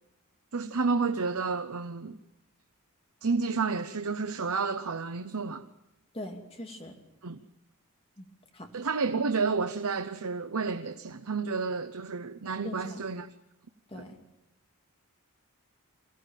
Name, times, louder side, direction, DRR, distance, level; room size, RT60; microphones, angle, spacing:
voice 1, 0.5-2.2 3.2-5.7 7.2-7.4 8.7-13.3 13.9-14.0, right 4 dB, 80° right, 0.8 m, -30 dB
voice 2, 6.1-6.9 8.2-8.3 8.5-8.7 12.6-13.0 13.9-14.2, left 1 dB, 25° left, 2.6 m, -41 dB
23.0 x 16.0 x 9.1 m
head